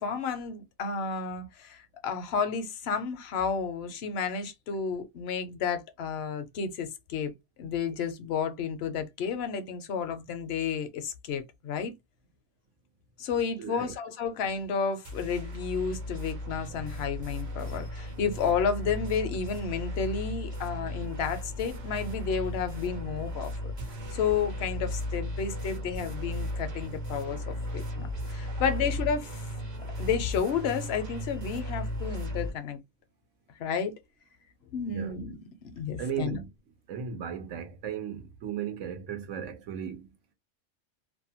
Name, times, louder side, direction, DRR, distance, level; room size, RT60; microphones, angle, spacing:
voice 1, 0.0-7.3 7.6-11.9 13.2-23.7 24.1-29.4 30.0-32.8 33.6-33.9 34.7-36.4, left 6 dB, 65° left, 0.8 m, -31 dB
voice 2, 13.6-13.9 28.0-28.1 34.9-35.2 36.0-36.5 36.9-40.1, right 8 dB, 85° right, 1.0 m, -36 dB
sound 1, 15.0-32.5, left 1 dB, 45° right, 0.7 m, -36 dB
2.6 x 2.1 x 2.7 m
omnidirectional pair, 1.2 m